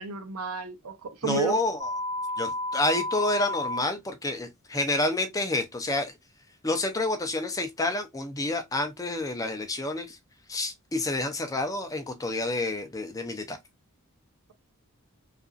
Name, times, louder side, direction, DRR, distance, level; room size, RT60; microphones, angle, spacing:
voice 1, 0.0-1.6, right 6 dB, 80° right, 0.6 m, -32 dB
voice 2, 1.2-1.9 2.4-6.1 6.6-10.2 10.5-13.6, left 2 dB, 15° left, 0.4 m, -29 dB
sound 1, 1.8-3.8, left 2 dB, 55° right, 0.8 m, -31 dB
2.8 x 2.4 x 2.4 m
head